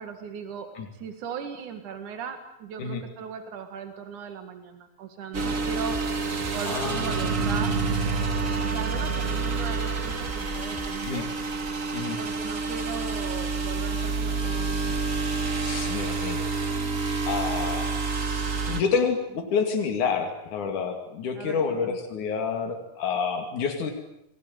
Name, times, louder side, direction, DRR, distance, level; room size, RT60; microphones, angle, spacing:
voice 1, 0.0-6.0 6.5-7.8 8.1-11.3 12.2-15.2 21.3-22.0, right 6 dB, 85° right, 7 dB, 3.4 m, -38 dB
sound 1, 5.3-18.8, right 4 dB, 35° right, 1.7 m, -28 dB
sound 2, 5.9-11.2, left 1 dB, 5° right, 7.4 m, -45 dB
voice 2, 6.7-7.2 11.0-11.3 11.9-12.2 15.6-16.5 17.3-18.0 18.7-23.9, left 5 dB, 85° left, 4 dB, 4.0 m, -28 dB
28.0 x 22.0 x 9.5 m, 0.82 s
omnidirectional pair, 3.4 m